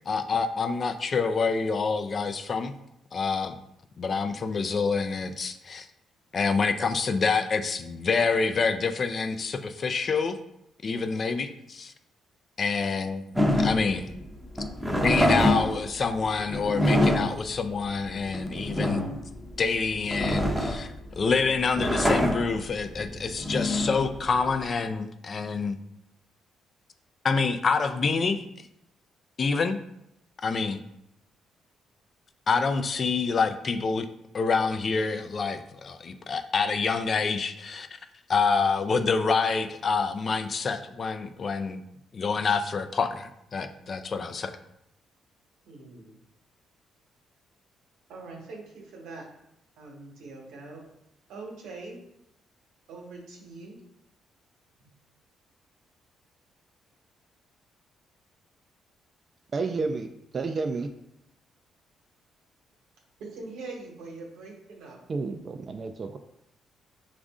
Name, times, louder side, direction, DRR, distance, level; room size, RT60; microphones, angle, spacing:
voice 1, 0.1-2.8 3.1-3.6 4.0-5.9 6.3-10.4 10.8-11.9 12.6-14.1 15.0-19.1 19.6-25.8 27.2-28.5 29.4-29.8 30.4-30.8 32.5-34.1 34.3-37.9 38.3-41.8 42.1-44.5, left 4 dB, 45° left, 8 dB, 0.4 m, -27 dB
sound 1, 13.4-24.7, left 1 dB, 5° right, 0.7 m, -26 dB
voice 2, 45.6-46.2 48.1-49.3 49.8-50.8 51.3-52.0 52.9-53.8 54.8-54.9 63.2-65.0, right 3 dB, 90° right, 0 dB, 1.1 m, -42 dB
voice 3, 59.5-60.1 60.3-60.9 65.1-66.2, right 4 dB, 40° right, 5 dB, 0.3 m, -30 dB
5.1 x 2.5 x 3.5 m, 0.81 s
cardioid pair, 90°, 0 cm